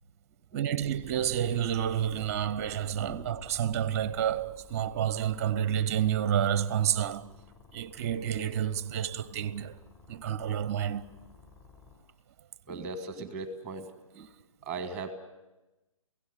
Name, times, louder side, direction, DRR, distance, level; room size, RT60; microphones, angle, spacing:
voice 1, 0.5-7.3 7.7-9.8 10.1-11.1, right 10 dB, 25° right, 0.8 m, -29 dB
sound 1, 0.8-12.0, left 6 dB, 15° left, 6.3 m, -55 dB
voice 2, 12.7-13.9 14.1-14.3 14.6-15.1, right 3 dB, 5° right, 1.5 m, -38 dB
29.5 x 17.0 x 8.1 m
figure-of-eight pair, 140°, 18 cm